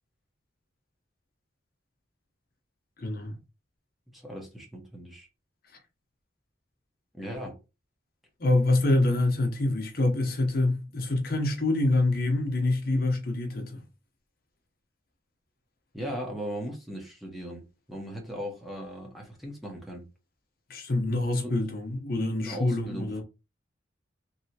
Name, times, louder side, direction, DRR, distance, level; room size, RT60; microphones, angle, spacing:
voice 1, 3.0-3.4 8.4-13.8 20.7-23.2, left 2 dB, 50° left, 0.8 m, -26 dB
voice 2, 4.1-5.3 7.1-7.6 15.9-20.1 21.4-21.5 22.4-23.2, equal, ahead, 0.9 m, -38 dB
3.1 x 2.7 x 2.7 m
head